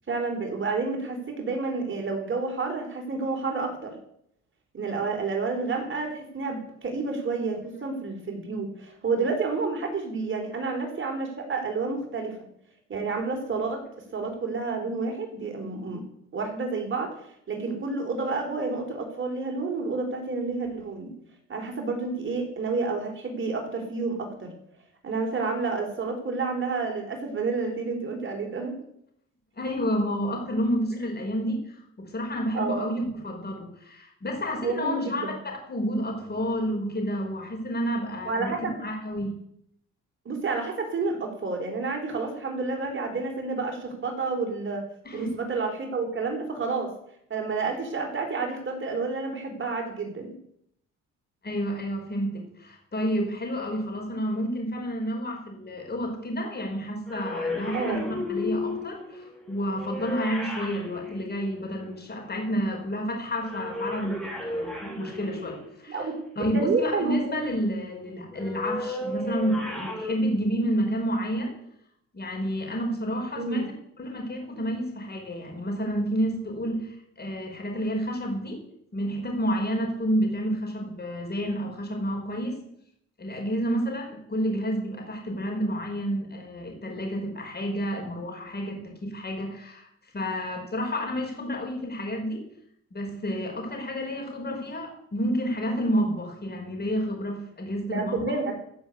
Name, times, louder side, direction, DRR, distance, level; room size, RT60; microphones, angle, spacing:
voice 1, 0.1-3.9 4.7-12.3 12.9-13.8 14.1-16.0 16.3-17.1 17.5-21.1 21.5-24.5 25.0-28.7 32.5-32.8 34.6-35.4 38.3-38.8 40.3-44.8 45.1-46.9 47.3-50.3 57.7-58.0 65.9-66.1 66.5-67.4 73.4-73.7 97.8-98.5, right 4 dB, 40° right, 3 dB, 4.1 m, -29 dB
voice 2, 29.6-31.6 32.0-35.3 35.7-38.5 38.8-39.4 45.0-45.3 51.4-66.1 66.4-71.5 72.1-73.7 74.0-78.6 78.9-82.6 83.2-89.9 90.1-92.4 92.9-98.2, equal, 35° left, 1 dB, 5.5 m, -30 dB
sound 1, 57.1-62.1 63.3-65.9 68.3-70.1, left 2 dB, ahead, 4.3 m, -34 dB
15.0 x 7.1 x 8.2 m, 0.73 s
cardioid pair, 90°, 30 cm